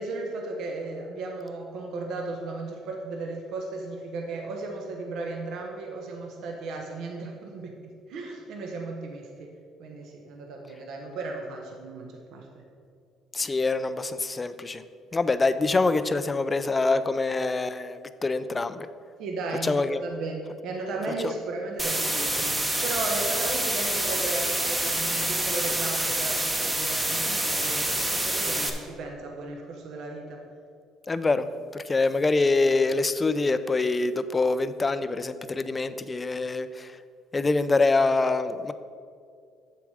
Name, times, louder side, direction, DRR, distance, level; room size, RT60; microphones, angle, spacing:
voice 1, 0.0-7.7 8.1-9.5 9.8-12.5 19.2-27.8 28.1-30.4, right 3 dB, 65° right, 1 dB, 1.0 m, -35 dB
voice 2, 13.3-14.8 15.1-18.9 19.6-20.0 21.2-21.3 31.1-37.0 37.3-38.7, left 3 dB, 20° left, 12 dB, 0.4 m, -25 dB
sound 1, 21.8-28.7, right 1 dB, 10° right, 0.9 m, -27 dB
7.7 x 6.9 x 4.9 m, 2.3 s
cardioid pair, 130°, 0 cm